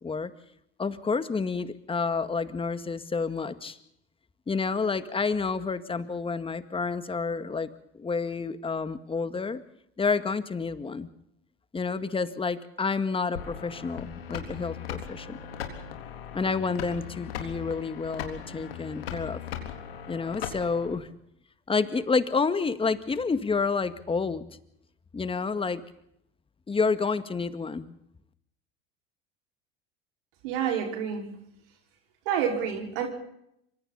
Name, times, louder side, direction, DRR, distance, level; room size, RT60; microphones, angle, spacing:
voice 1, 0.8-3.8 4.5-7.7 7.9-9.6 10.0-11.1 11.7-15.4 16.3-19.4 20.1-21.1 21.7-24.4 25.1-25.8 26.7-27.9, left 4 dB, 20° left, 11 dB, 2.0 m, -29 dB
sound 1, 13.3-21.0, left 8 dB, 80° left, 3.8 m, -38 dB
voice 2, 30.4-31.3 32.3-33.1, right 8 dB, 65° right, 2 dB, 5.3 m, -28 dB
27.0 x 25.5 x 4.2 m, 0.75 s
hypercardioid pair, 80°, 29 cm